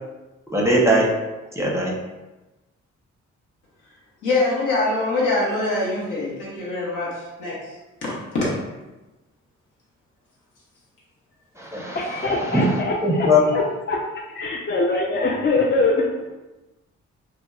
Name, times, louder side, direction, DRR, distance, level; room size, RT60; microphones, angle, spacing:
voice 1, 0.5-1.1 1.6-1.9 11.6-12.7 13.0-13.4, left 1 dB, 10° right, -3 dB, 0.6 m, -20 dB
voice 2, 4.2-7.6 8.0-8.6, left 2 dB, 80° left, -5 dB, 0.9 m, -24 dB
voice 3, 11.9-13.6 13.9-16.3, left 2 dB, 35° left, -2 dB, 0.4 m, -23 dB
2.8 x 2.0 x 2.3 m, 1.1 s
supercardioid pair, 55°, 31 cm